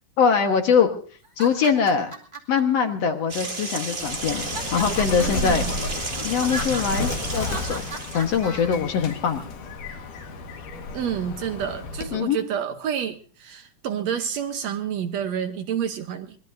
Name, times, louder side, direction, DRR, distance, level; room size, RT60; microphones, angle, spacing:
voice 1, 0.2-0.9 1.4-2.1 2.5-5.7 6.2-7.9 8.1-9.4 12.1-12.4, left 6 dB, 60° left, 2.3 m, -22 dB
sound 1, 1.2-2.6 3.3-3.9 4.4-8.8, right 1 dB, 10° right, 1.9 m, -37 dB
sound 2, 3.3-8.4, right 3 dB, 30° right, 1.1 m, -33 dB
Bird, 4.0-12.3, left 3 dB, 85° left, 3.3 m, -32 dB
voice 2, 5.2-5.7 10.9-16.4, right 8 dB, 65° right, 2.0 m, -29 dB
24.0 x 20.5 x 2.7 m
omnidirectional pair, 3.6 m